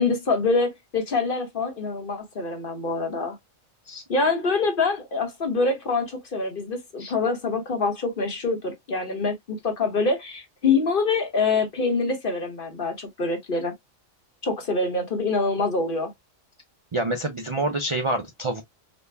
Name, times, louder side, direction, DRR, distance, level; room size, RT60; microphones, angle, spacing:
voice 1, 0.0-3.4 4.1-13.7 14.4-16.1, left 3 dB, 45° left, 1.1 m, -25 dB
voice 2, 16.9-18.6, right 2 dB, 40° right, 0.4 m, -27 dB
4.2 x 2.2 x 3.4 m
omnidirectional pair, 1.3 m